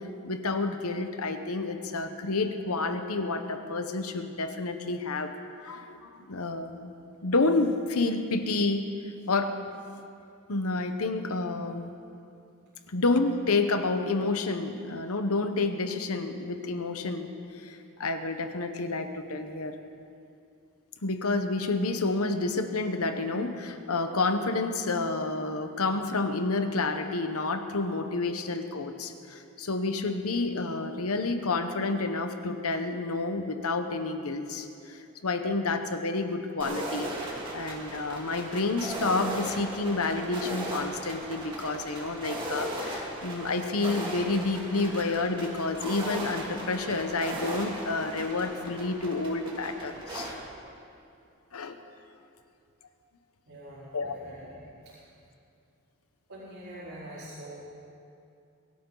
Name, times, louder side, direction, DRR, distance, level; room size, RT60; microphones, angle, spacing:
voice 1, 0.2-5.3 5.6-6.9 7.2-8.9 9.3-9.6 10.5-11.9 12.9-19.8 21.0-50.3 51.5-51.8 53.9-54.1, left 3 dB, 85° left, 7 dB, 1.1 m, -29 dB
sound 1, 36.6-50.3, right 1 dB, 20° right, 2.4 m, -37 dB
voice 2, 53.5-55.0 56.3-57.7, right 1 dB, 85° right, -12 dB, 4.5 m, -45 dB
23.0 x 13.0 x 4.0 m, 2.6 s
head